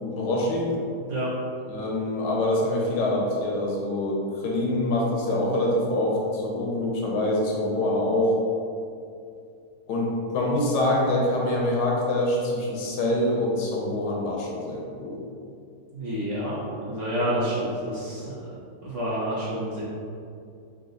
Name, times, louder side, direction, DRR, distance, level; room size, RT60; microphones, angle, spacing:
voice 1, 0.0-0.8 1.7-8.3 9.9-15.2, left 1 dB, 75° left, -2 dB, 1.4 m, -25 dB
voice 2, 15.9-16.6 16.9-18.4 18.8-19.8, equal, 55° right, -7 dB, 1.0 m, -28 dB
4.0 x 2.8 x 3.8 m, 2.4 s
omnidirectional pair, 1.9 m